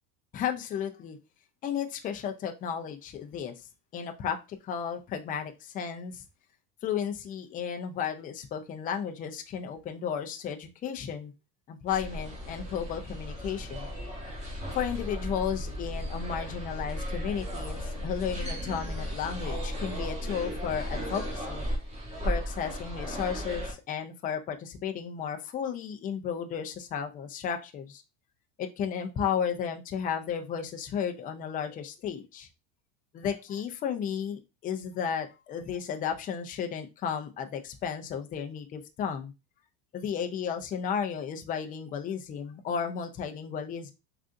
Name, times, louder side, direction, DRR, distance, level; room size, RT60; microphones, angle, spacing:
voice 1, 0.3-1.2 1.6-3.6 3.9-6.2 6.8-11.3 11.7-13.9 14.7-21.6 22.2-28.0 28.6-32.5 33.1-39.3 39.9-43.9, left 7 dB, 20° left, 5 dB, 0.3 m, -33 dB
sound 1, 11.9-23.7, equal, 15° right, 1.4 m, -35 dB
3.6 x 2.5 x 2.5 m, 0.26 s
supercardioid pair, 100°, 47 cm